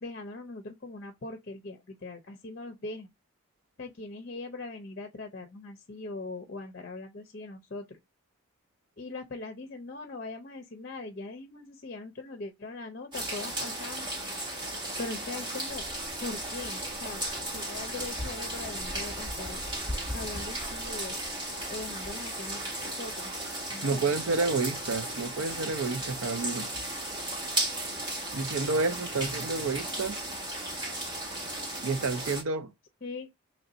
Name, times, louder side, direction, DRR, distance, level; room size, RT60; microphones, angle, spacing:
voice 1, 0.0-3.1 3.8-8.0 9.0-14.1 15.0-15.8 16.2-17.2 17.5-19.6 20.1-21.2 21.7-22.6 23.0-23.3 23.7-24.0 33.0-33.3, left 2 dB, 45° left, 0.5 m, -40 dB
sound 1, 13.1-32.4, right 1 dB, 20° right, 1.1 m, -35 dB
sound 2, 15.7-22.2, left 1 dB, 5° left, 1.1 m, -42 dB
voice 2, 23.8-26.7 28.3-30.2 31.8-32.7, right 3 dB, 80° right, 0.6 m, -30 dB
3.2 x 2.6 x 3.9 m
head